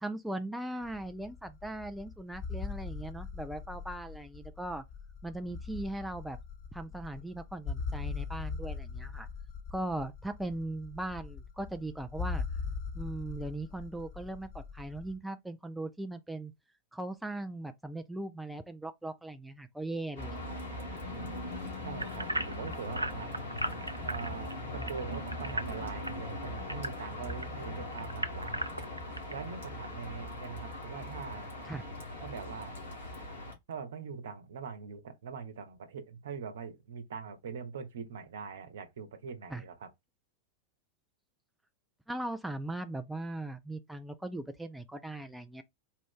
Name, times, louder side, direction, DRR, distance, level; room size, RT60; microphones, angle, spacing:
voice 1, 0.0-4.8 5.2-6.4 6.7-9.3 9.7-12.4 12.9-16.5 16.9-20.4 31.6-31.8 39.5-39.6 42.1-45.6, right 1 dB, 5° right, 0.4 m, -39 dB
sound 1, 0.8-15.2, left 5 dB, 40° left, 1.6 m, -41 dB
sound 2, 20.2-33.5, left 1 dB, 65° left, 2.2 m, -40 dB
voice 2, 21.8-23.3 24.0-28.6 29.3-31.5 32.2-32.8 33.7-39.9, right 6 dB, 60° right, 1.0 m, -42 dB
sound 3, 22.0-27.5 27.9-29.3 29.8-29.9 30.4-30.5, right 1 dB, 85° right, 0.4 m, -37 dB
4.5 x 2.5 x 3.7 m
figure-of-eight pair, 90°, 0 cm